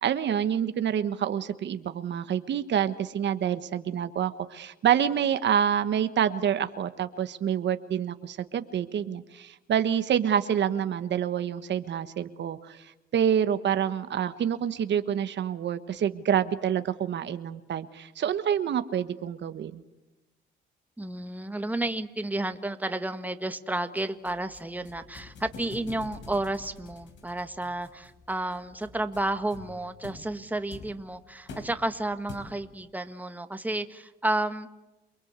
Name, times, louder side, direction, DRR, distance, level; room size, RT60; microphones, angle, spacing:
voice 1, 0.0-12.8 13.1-19.8, right 9 dB, 65° right, 10 dB, 1.3 m, -27 dB
voice 2, 21.0-34.7, right 1 dB, 10° right, 8 dB, 1.7 m, -31 dB
sound 1, 24.0-32.8, left 3 dB, 70° left, 4.9 m, -47 dB
28.5 x 21.0 x 8.2 m, 1.0 s
cardioid pair, 90°, 20 cm